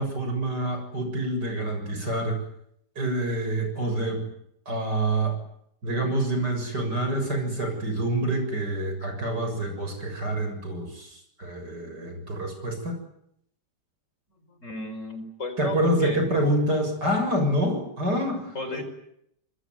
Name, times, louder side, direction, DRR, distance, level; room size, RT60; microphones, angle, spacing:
voice 1, 0.0-2.4 3.0-4.2 4.7-5.4 5.8-13.0 15.6-18.8, right 1 dB, 75° right, 5 dB, 7.8 m, -27 dB
voice 2, 14.5-16.2 18.6-18.8, left 2 dB, 45° left, 8 dB, 5.0 m, -34 dB
27.5 x 21.0 x 9.4 m, 0.75 s
omnidirectional pair, 1.8 m